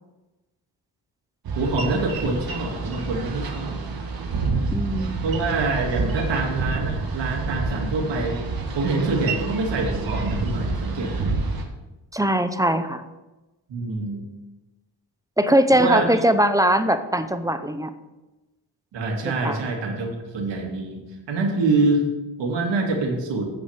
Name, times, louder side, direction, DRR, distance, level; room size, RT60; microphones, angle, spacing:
Boat Water vehicle, 1.4-11.6, right 3 dB, 55° right, 1.7 m, -28 dB
voice 1, 1.5-3.8 5.2-8.5 8.7-11.3 13.7-14.2 15.7-16.2 18.9-22.1 22.4-23.5, right 3 dB, 85° right, 1 dB, 2.5 m, -25 dB
voice 2, 4.7-5.2 12.1-13.0 15.4-17.9 19.2-19.6, right 1 dB, 10° right, 9 dB, 0.6 m, -21 dB
8.6 x 6.5 x 7.2 m, 1.1 s
wide cardioid pair, 135°, 42 cm